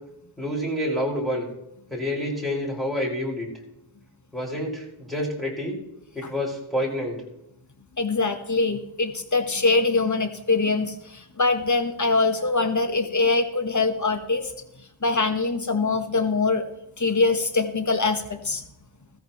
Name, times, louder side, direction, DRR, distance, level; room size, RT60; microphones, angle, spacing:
voice 1, 0.4-1.5 1.9-3.5 4.3-5.8 6.1-7.2, equal, ahead, -4 dB, 5.6 m, -28 dB
voice 2, 8.0-14.5 15.0-16.6 17.0-18.6, left 3 dB, 35° left, 7 dB, 1.4 m, -23 dB
16.0 x 14.0 x 3.1 m, 0.81 s
wide cardioid pair, 45°, 48 cm